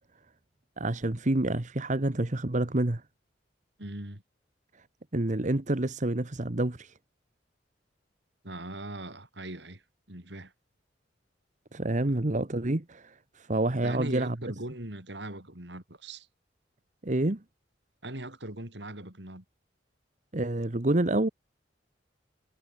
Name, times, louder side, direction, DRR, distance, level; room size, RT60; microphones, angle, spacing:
voice 1, 0.8-3.0 5.1-6.9 11.7-14.4 17.0-17.4 20.3-21.3, right 1 dB, 45° right, 1.3 m, -28 dB
voice 2, 3.8-4.2 8.4-9.8 10.1-10.5 12.0-12.2 13.7-16.3 18.0-19.4, right 1 dB, 65° right, 5.4 m, -40 dB
head